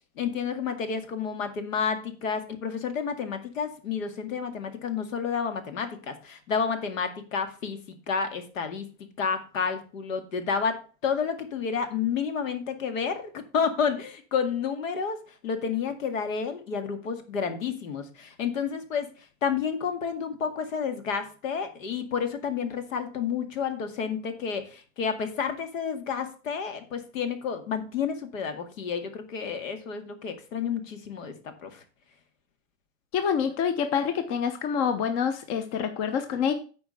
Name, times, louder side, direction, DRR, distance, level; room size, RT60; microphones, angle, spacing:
voice 1, 0.2-8.9 9.2-19.1 19.4-31.8, left 6 dB, 80° left, 8 dB, 2.1 m, -30 dB
voice 2, 33.1-36.5, left 7 dB, 40° left, 9 dB, 1.1 m, -27 dB
8.7 x 4.7 x 6.7 m, 0.37 s
hypercardioid pair, 120°, 39 cm